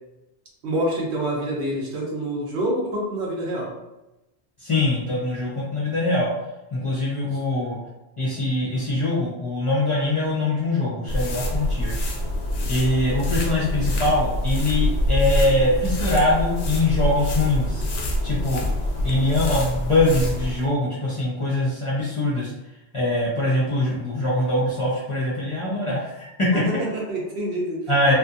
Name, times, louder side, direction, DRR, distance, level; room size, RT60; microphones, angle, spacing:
voice 1, 0.6-3.7 7.3-7.4 26.5-28.1, right 1 dB, 70° right, -2 dB, 1.0 m, -27 dB
voice 2, 4.6-6.3 6.7-7.8 8.2-11.9 12.7-17.9 18.2-18.6 19.0-22.5 22.9-26.6 27.9-28.1, left 2 dB, 35° left, -7 dB, 0.6 m, -23 dB
sound 1, 11.1-20.6, left 1 dB, 70° left, 0.8 m, -25 dB
2.6 x 2.5 x 2.5 m, 0.98 s
omnidirectional pair, 1.2 m